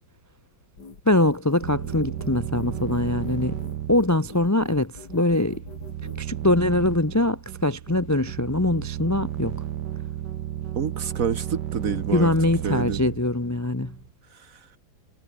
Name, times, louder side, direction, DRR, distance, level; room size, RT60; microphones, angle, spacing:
sound 1, 0.8-6.2, left 4 dB, 60° left, 3.9 m, -44 dB
voice 1, 1.1-3.6 3.9-5.6 6.2-9.6 12.1-14.0, left 2 dB, 25° left, 0.3 m, -23 dB
sound 2, 1.6-14.1, right 11 dB, 65° right, 1.5 m, -33 dB
voice 2, 10.8-12.3 12.6-13.0 14.3-14.6, right 6 dB, 50° right, 1.7 m, -28 dB
omnidirectional pair, 2.1 m